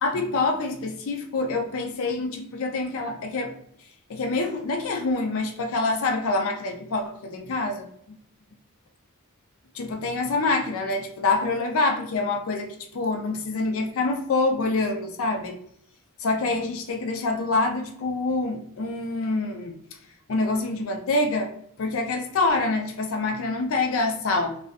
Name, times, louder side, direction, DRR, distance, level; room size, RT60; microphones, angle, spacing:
voice 1, 0.0-3.5 4.1-7.9 9.7-15.6 16.2-19.7 20.3-21.5 21.8-24.6, left 3 dB, 65° left, 4 dB, 0.4 m, -26 dB
2.6 x 2.1 x 2.4 m, 0.69 s
head